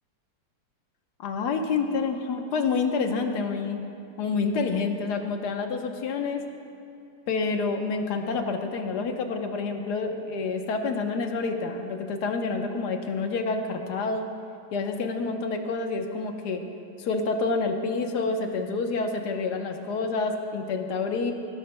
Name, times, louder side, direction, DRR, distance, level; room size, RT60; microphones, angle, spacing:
voice 1, 1.2-3.8 4.2-6.4 7.3-14.3 14.7-16.6 17.0-21.3, left 4 dB, 65° left, 4 dB, 1.5 m, -28 dB
19.0 x 19.0 x 2.2 m, 2.7 s
omnidirectional pair, 2.0 m